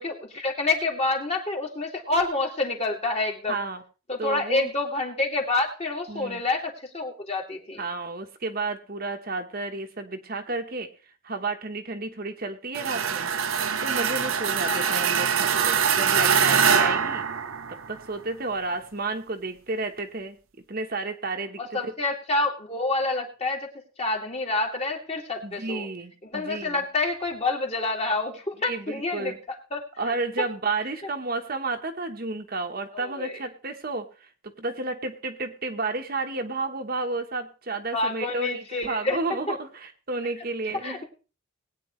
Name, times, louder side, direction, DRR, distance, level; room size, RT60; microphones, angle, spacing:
voice 1, 0.0-3.6 4.1-7.9 14.6-14.9 21.6-23.7 24.0-25.9 26.2-30.1 32.9-33.4 37.9-39.2 40.8-41.0, left 2 dB, 30° left, 1 dB, 2.4 m, -28 dB
voice 2, 3.5-3.8 4.2-4.7 6.1-6.4 7.8-10.9 11.2-13.3 13.8-17.2 17.7-20.4 20.7-21.9 25.4-26.8 28.6-29.4 30.0-41.0, right 3 dB, 45° right, 5 dB, 1.2 m, -31 dB
sound 1, 12.7-18.0, right 7 dB, 80° right, 1.0 m, -23 dB
20.0 x 9.3 x 3.2 m, 0.34 s
head